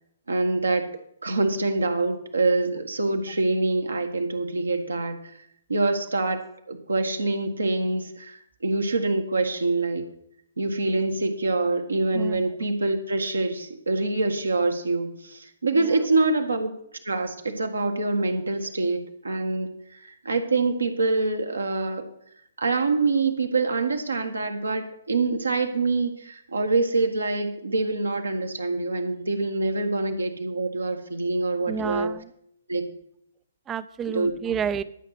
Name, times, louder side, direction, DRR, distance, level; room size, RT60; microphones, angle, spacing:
voice 1, 0.3-0.8 1.2-5.4 5.7-10.0 10.6-16.7 17.0-22.0 22.6-32.1 32.7-32.9 34.1-34.3, right 3 dB, 70° right, 5 dB, 1.6 m, -25 dB
voice 2, 12.1-12.5 15.7-15.9 31.7-32.3 33.7-34.8, right 7 dB, 15° right, 15 dB, 0.5 m, -30 dB
12.0 x 6.5 x 6.0 m, 0.73 s
figure-of-eight pair, 125°, 0 cm